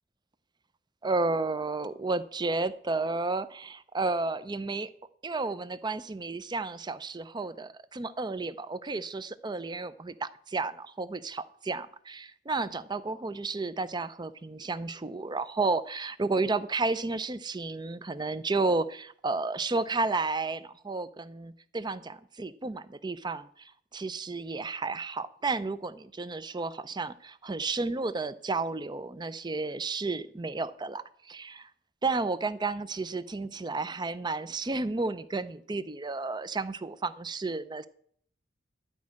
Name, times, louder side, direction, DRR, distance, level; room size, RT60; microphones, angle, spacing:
voice 1, 1.0-4.9 5.2-31.7 32.0-37.9, right 3 dB, 25° right, 15 dB, 0.5 m, -32 dB
12.0 x 5.2 x 8.4 m, 0.62 s
head